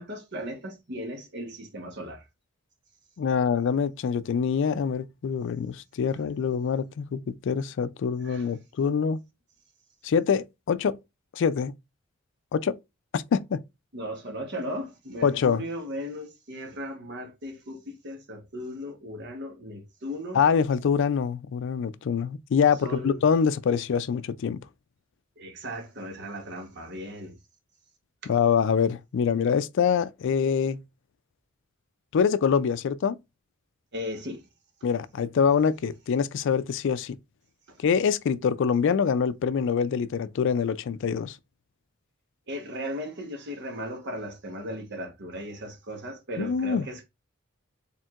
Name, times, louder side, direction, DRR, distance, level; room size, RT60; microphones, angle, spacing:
voice 1, 0.0-2.2 8.2-8.5 13.9-20.4 22.8-23.2 25.4-27.3 33.9-34.4 42.5-47.0, equal, 60° right, 1.1 m, -37 dB
voice 2, 3.2-9.2 10.0-11.0 11.3-11.7 12.5-12.8 13.1-13.6 15.2-15.6 20.3-24.6 28.3-30.8 32.1-33.2 34.8-37.2 37.8-41.4 46.4-46.9, left 6 dB, 65° left, 0.4 m, -25 dB
4.4 x 3.6 x 2.4 m
head